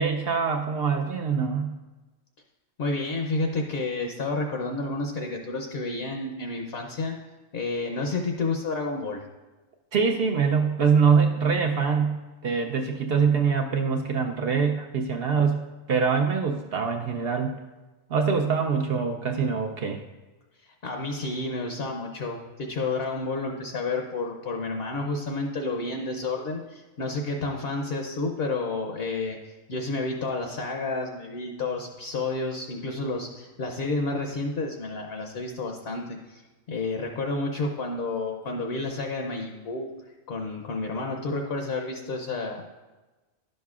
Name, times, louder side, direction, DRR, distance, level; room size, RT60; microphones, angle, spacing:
voice 1, 0.0-1.7 9.9-15.6 15.9-17.5 18.1-20.0, right 5 dB, 60° right, 3 dB, 0.6 m, -24 dB
voice 2, 2.8-7.1 7.5-9.2 20.8-29.4 29.7-36.4 36.7-39.9 40.3-42.6, left 3 dB, 55° left, 3 dB, 0.8 m, -30 dB
11.0 x 6.5 x 2.4 m, 1.2 s
omnidirectional pair, 1.4 m